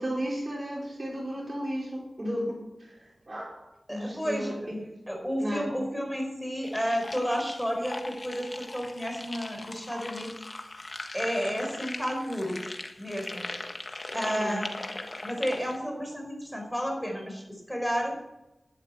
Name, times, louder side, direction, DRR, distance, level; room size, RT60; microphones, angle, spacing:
voice 1, 0.0-4.8 5.4-5.7 14.3-14.6, equal, 45° right, -2 dB, 4.5 m, -34 dB
voice 2, 3.9-4.7 5.1-10.3 11.1-12.6 13.0-13.4 14.1-14.7 15.2-18.1, equal, 5° left, 1 dB, 5.3 m, -31 dB
sound 1, 6.6-15.8, left 2 dB, 45° left, 1.5 m, -39 dB
11.5 x 11.0 x 5.8 m, 0.95 s
cardioid pair, 45°, 0 cm